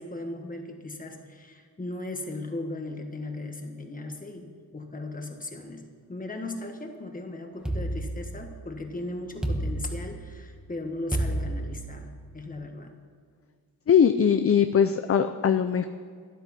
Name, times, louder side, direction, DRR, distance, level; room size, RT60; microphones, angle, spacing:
voice 1, 0.0-5.8 6.1-13.0, left 2 dB, 20° left, 4 dB, 1.4 m, -37 dB
sound 1, 7.6-8.8 9.4-10.5 11.1-12.2, right 1 dB, ahead, 1.0 m, -30 dB
voice 2, 13.9-15.9, left 8 dB, 40° left, 9 dB, 0.4 m, -21 dB
12.5 x 12.5 x 4.2 m, 2.1 s
wide cardioid pair, 175°, 37 cm